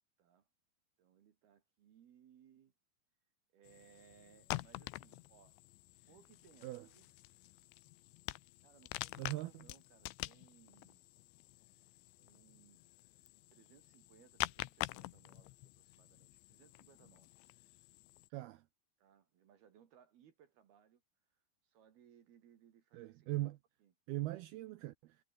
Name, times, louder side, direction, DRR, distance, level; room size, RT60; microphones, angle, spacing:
voice 1, 1.0-2.7 3.5-5.6 6.1-7.1 8.6-11.0 12.1-12.8 13.5-17.3 19.0-21.0 21.6-23.5 23.8-23.9, right 9 dB, 60° right, 3.7 m, -66 dB
sound 1, 3.7-18.3, left 21 dB, 90° left, 3.0 m, -47 dB
voice 2, 9.2-9.7 18.3-18.6 22.9-23.6 24.1-25.2, right 17 dB, 80° right, 2.3 m, -40 dB
omnidirectional pair, 5.4 m